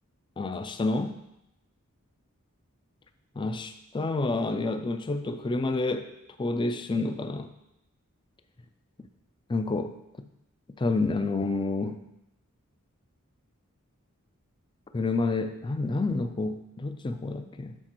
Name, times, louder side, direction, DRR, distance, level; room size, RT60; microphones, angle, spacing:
voice 1, 0.4-1.2 3.4-6.1 6.4-7.5 9.5-10.3 10.8-12.0 14.9-17.8, left 3 dB, 20° left, 9 dB, 0.4 m, -29 dB
8.1 x 4.2 x 4.5 m, 0.84 s
head